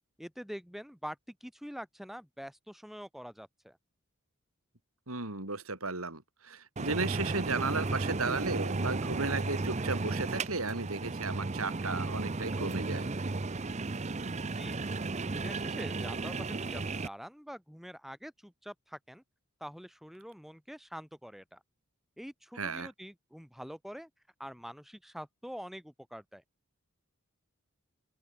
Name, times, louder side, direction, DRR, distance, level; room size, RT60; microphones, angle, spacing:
voice 1, 0.2-3.8 14.4-14.8 15.3-19.2 19.6-21.6 22.2-24.1 24.4-26.4, equal, ahead, 2.9 m, -45 dB
voice 2, 5.1-13.1 22.6-22.9, right 3 dB, 75° right, 5.1 m, -34 dB
sound 1, 6.8-17.1, right 3 dB, 30° right, 0.7 m, -34 dB
open air
head